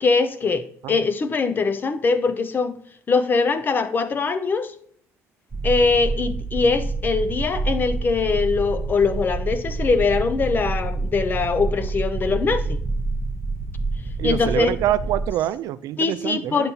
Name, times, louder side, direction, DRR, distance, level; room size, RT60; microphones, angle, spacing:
voice 1, 0.0-2.7 3.1-4.7 5.6-12.8 14.2-14.7 16.0-16.7, left 4 dB, 35° left, 0.6 m, -22 dB
sound 1, 5.5-15.3, right 3 dB, 20° right, 0.7 m, -27 dB
voice 2, 14.2-16.7, right 13 dB, 70° right, 0.4 m, -25 dB
8.9 x 6.8 x 2.8 m
cardioid pair, 110°, 6 cm